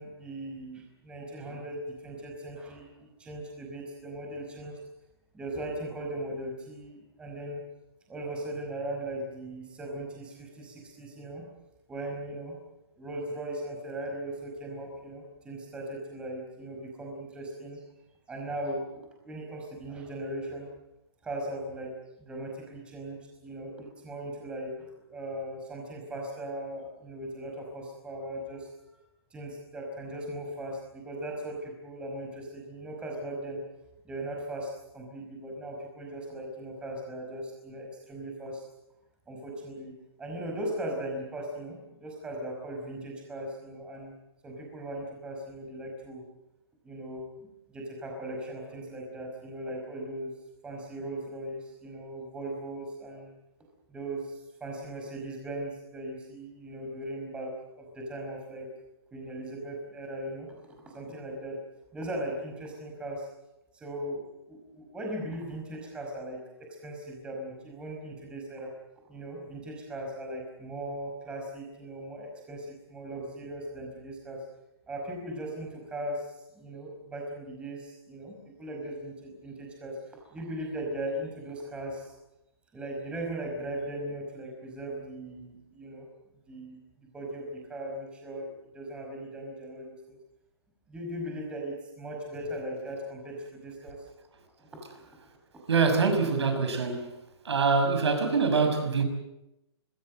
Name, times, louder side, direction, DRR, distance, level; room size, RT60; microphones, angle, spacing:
voice 1, 0.0-4.8 5.3-7.6 8.1-11.5 11.9-12.6 13.0-17.8 18.3-18.9 19.2-20.7 21.2-28.7 29.3-33.6 34.0-38.6 39.3-44.2 44.4-46.2 46.8-50.3 50.6-53.4 53.9-58.7 59.1-60.5 60.9-61.6 61.9-63.3 63.7-68.7 69.1-74.4 74.9-82.1 82.7-86.1 86.5-90.2 90.9-94.1 96.0-96.1, right 1 dB, 5° right, 0 dB, 5.2 m, -38 dB
voice 2, 95.7-97.1 97.4-99.0, right 4 dB, 80° right, 7 dB, 6.3 m, -24 dB
25.0 x 21.0 x 7.8 m, 0.90 s
hypercardioid pair, 165°, 14 cm